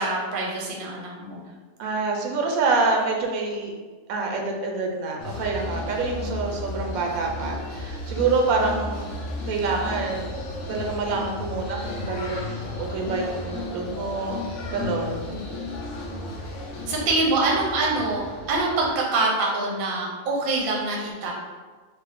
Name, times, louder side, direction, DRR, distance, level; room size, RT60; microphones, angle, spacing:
voice 1, 0.0-1.4 6.2-6.4 15.3-15.4 16.9-18.2 18.5-21.3, right 2 dB, 50° right, -2 dB, 0.7 m, -25 dB
voice 2, 1.8-3.7 4.1-9.2 9.5-10.4 10.7-14.4 14.7-15.3, right 3 dB, 80° right, 1 dB, 1.0 m, -26 dB
sound 1, 5.2-18.9, left 2 dB, 65° left, 0.9 m, -34 dB
4.1 x 2.0 x 3.5 m, 1.4 s
omnidirectional pair, 1.5 m